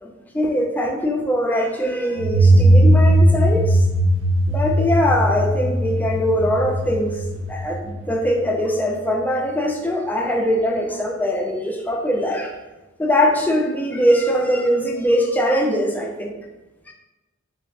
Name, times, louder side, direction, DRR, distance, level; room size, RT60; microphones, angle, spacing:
voice 1, 0.0-3.8 4.5-7.2 7.5-12.5 13.0-16.4 16.9-17.0, equal, 10° left, 1 dB, 0.4 m, -21 dB
sound 1, 2.2-8.7, right 1 dB, 70° right, 0.4 m, -18 dB
5.6 x 2.0 x 2.5 m, 1.1 s
head